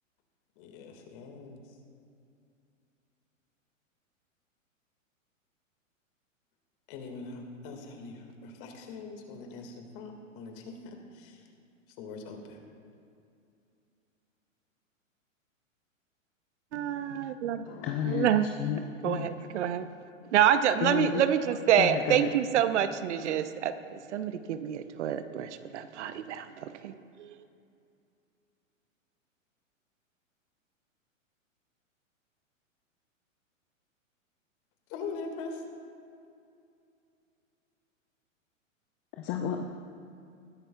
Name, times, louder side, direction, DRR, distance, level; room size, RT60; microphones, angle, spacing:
voice 1, 0.6-1.8 6.9-11.5 12.0-12.6 34.9-35.6, left 4 dB, 45° left, 3 dB, 1.9 m, -42 dB
voice 2, 16.7-17.8 18.1-18.5 19.0-19.9 20.3-26.9 27.2-27.4, right 10 dB, 60° right, 11 dB, 0.7 m, -27 dB
voice 3, 17.7-18.3 18.6-19.3 20.8-21.2 21.8-22.3 39.2-39.7, left 9 dB, 25° left, 4 dB, 0.4 m, -32 dB
20.5 x 10.5 x 2.3 m, 2.5 s
hypercardioid pair, 115°, 40 cm